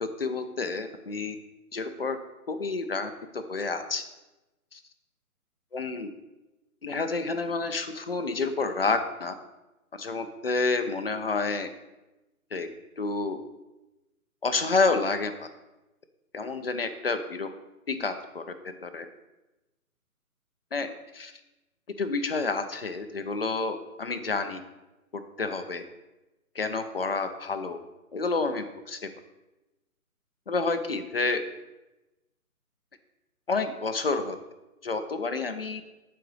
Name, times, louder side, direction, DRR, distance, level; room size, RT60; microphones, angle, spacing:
voice 1, 0.0-1.4 1.7-2.2 2.5-4.0 4.7-4.8 5.7-6.1 6.8-9.3 10.0-11.7 12.5-12.7 13.0-13.4 14.4-15.5 16.3-17.5 17.9-18.4 18.8-19.1 20.7-20.9 21.1-21.3 22.0-24.6 25.4-25.8 26.5-27.8 28.1-29.0 30.5-31.4 33.5-34.4 34.8-35.8, left 3 dB, 45° left, 8 dB, 0.5 m, -29 dB
7.7 x 4.0 x 4.7 m, 1.0 s
hypercardioid pair, 165°, 44 cm